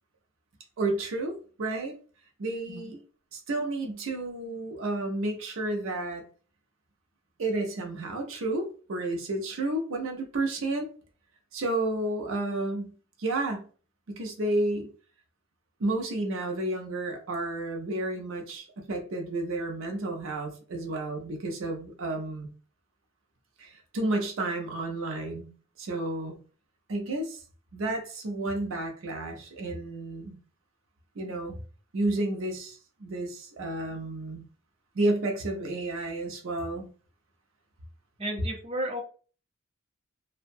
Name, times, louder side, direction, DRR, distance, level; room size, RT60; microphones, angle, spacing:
voice 1, 0.8-2.0 2.4-3.0 3.3-6.2 7.4-10.9 11.5-12.9 13.2-13.7 14.1-14.9 15.8-22.5 23.6-25.5 25.8-26.4 26.9-27.4 27.7-30.4 31.2-31.6 31.9-34.5 34.9-36.9, right 2 dB, 75° right, 3 dB, 0.5 m, -31 dB
voice 2, 38.2-39.0, right 1 dB, 30° right, 0 dB, 0.7 m, -33 dB
2.5 x 2.1 x 2.5 m, 0.39 s
head